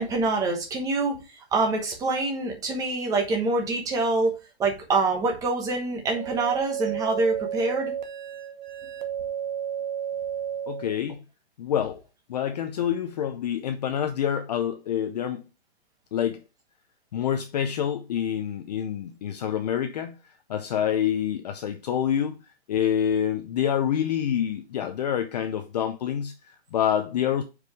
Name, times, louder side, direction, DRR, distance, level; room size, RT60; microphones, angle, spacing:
voice 1, 0.0-7.9, right 3 dB, 10° right, 1.0 m, -26 dB
sound 1, 6.0-11.0, right 9 dB, 45° right, 1.1 m, -32 dB
voice 2, 10.7-11.2 11.6-12.0 12.3-15.4 16.1-16.4 17.1-20.2 20.5-22.4 22.7-27.4, left 9 dB, 40° left, 0.6 m, -27 dB
5.1 x 4.9 x 4.6 m
hypercardioid pair, 160°, 33 cm